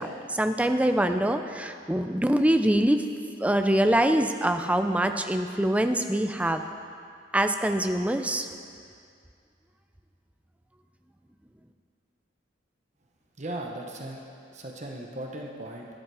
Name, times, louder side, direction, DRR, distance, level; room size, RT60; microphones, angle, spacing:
voice 1, 0.0-3.0 3.4-6.6 7.3-8.5, right 1 dB, 5° right, 7 dB, 0.5 m, -24 dB
voice 2, 13.4-14.2 14.5-15.9, right 1 dB, 40° right, 0 dB, 1.0 m, -37 dB
12.0 x 11.0 x 4.8 m, 2.3 s
head